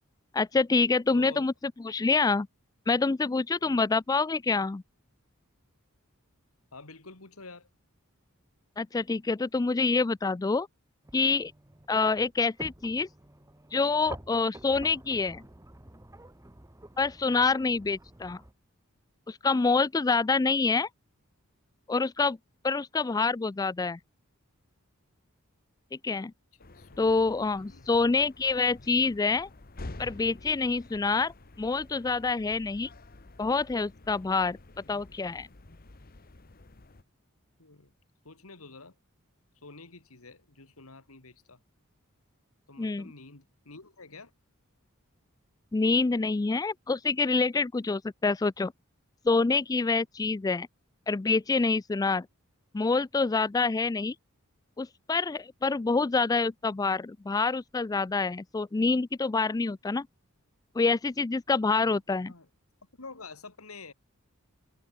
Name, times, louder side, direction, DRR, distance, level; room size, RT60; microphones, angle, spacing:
voice 1, 0.3-1.5 1.8-2.5 2.9-4.8 8.8-10.7 11.1-11.5 11.9-13.1 13.7-15.4 17.0-18.4 19.3-20.9 21.9-22.4 22.6-24.0 26.0-26.3 27.0-29.5 30.0-31.3 31.6-32.9 33.4-34.6 34.9-35.5 42.8-43.1 45.7-48.7 49.3-50.7 51.1-52.3 52.7-54.1 54.8-60.1 60.8-62.3, left 4 dB, 15° left, 0.3 m, -26 dB
voice 2, 1.1-1.5 3.6-3.8 6.7-7.7 26.1-26.3 26.7-28.0 37.6-37.9 38.2-38.9 39.6-41.6 42.7-44.3 61.8-62.0 62.3-62.5 63.0-63.9, left 3 dB, 80° left, 2.8 m, -48 dB
sound 1, 11.0-18.5, right 1 dB, 15° right, 1.3 m, -49 dB
sound 2, 26.6-37.0, left 2 dB, 45° left, 1.2 m, -49 dB
head